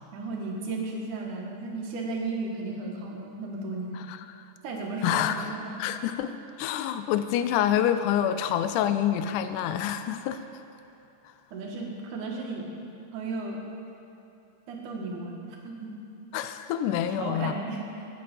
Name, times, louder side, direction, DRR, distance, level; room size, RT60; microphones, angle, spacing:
voice 1, 0.1-4.0 4.6-5.8 11.5-12.6 13.1-13.6 14.7-15.9 17.1-18.1, right 3 dB, 85° right, -1 dB, 2.9 m, -34 dB
voice 2, 5.0-6.3 6.6-10.4 16.3-17.5, left 10 dB, 90° left, 10 dB, 2.1 m, -27 dB
15.0 x 8.5 x 5.0 m, 2.9 s
omnidirectional pair, 3.5 m